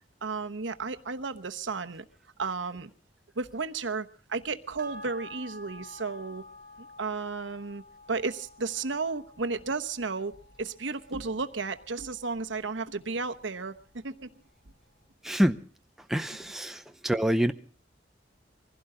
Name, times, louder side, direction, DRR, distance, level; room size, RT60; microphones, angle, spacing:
voice 1, 0.2-2.0 2.4-2.9 3.4-6.4 6.8-7.8 8.1-10.3 10.6-13.7 14.0-14.3, right 4 dB, 90° right, 8 dB, 1.0 m, -33 dB
sound 1, 4.8-13.5 13.9-14.0, left 1 dB, 60° right, 3.5 m, -50 dB
voice 2, 15.2-15.6 16.1-17.5, equal, ahead, 7 dB, 0.7 m, -26 dB
23.5 x 16.0 x 3.8 m, 0.41 s
head